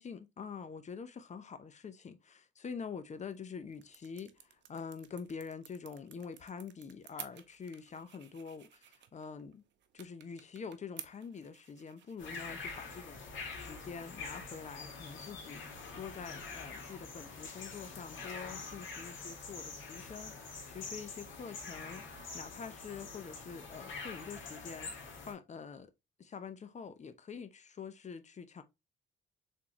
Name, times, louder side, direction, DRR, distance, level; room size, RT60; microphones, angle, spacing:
voice 1, 0.0-9.6 9.9-25.9 26.2-28.6, left 6 dB, 35° left, 0.6 m, -46 dB
sound 1, 3.2-14.7, right 10 dB, 65° right, 0.6 m, -55 dB
sound 2, 12.2-25.3, left 4 dB, 75° left, 1.5 m, -45 dB
3.7 x 3.7 x 2.9 m
cardioid pair, 90°, 20 cm